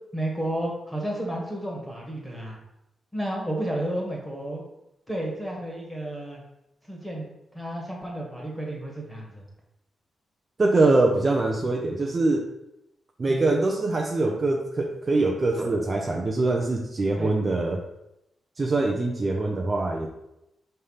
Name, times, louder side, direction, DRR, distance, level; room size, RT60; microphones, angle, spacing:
voice 1, 0.1-2.6 3.1-4.6 5.1-6.4 6.8-7.3 7.5-9.4 13.3-13.4 17.2-17.3, right 1 dB, 5° left, -2 dB, 1.6 m, -32 dB
voice 2, 10.6-12.5 13.2-17.8 18.6-20.1, right 2 dB, 30° right, 0 dB, 0.6 m, -23 dB
5.4 x 3.3 x 5.6 m, 0.86 s
wide cardioid pair, 140°, 0 cm